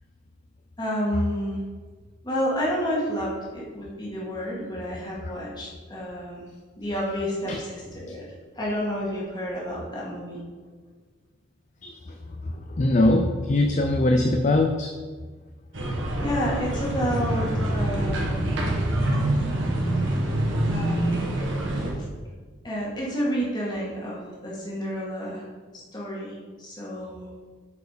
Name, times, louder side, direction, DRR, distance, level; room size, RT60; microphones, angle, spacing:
voice 1, 0.8-1.6 2.2-6.5 6.8-8.2 8.6-10.4 16.2-18.6 19.1-19.2 20.7-21.4 21.7-22.0 22.6-25.4 25.9-27.3, equal, 20° left, -5 dB, 1.9 m, -30 dB
voice 2, 12.4-14.9, left 2 dB, 35° left, 4 dB, 0.5 m, -22 dB
sound 1, 15.7-21.9, right 1 dB, 70° right, 1.7 m, -25 dB
8.2 x 4.7 x 5.0 m, 1.5 s
head